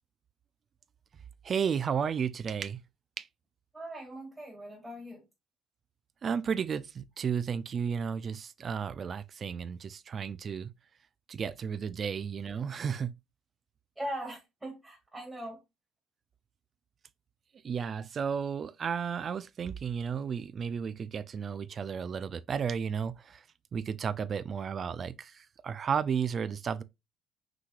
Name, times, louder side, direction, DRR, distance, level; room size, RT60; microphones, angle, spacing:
voice 1, 1.4-2.8 3.2-3.3 6.2-10.7 11.3-13.1 17.6-23.4 23.7-26.8, right 7 dB, 40° right, 0.4 m, -33 dB
voice 2, 3.7-5.2 14.0-15.6, right 1 dB, 15° right, 1.8 m, -40 dB
5.9 x 3.2 x 2.4 m
cardioid pair, 110°, 0 cm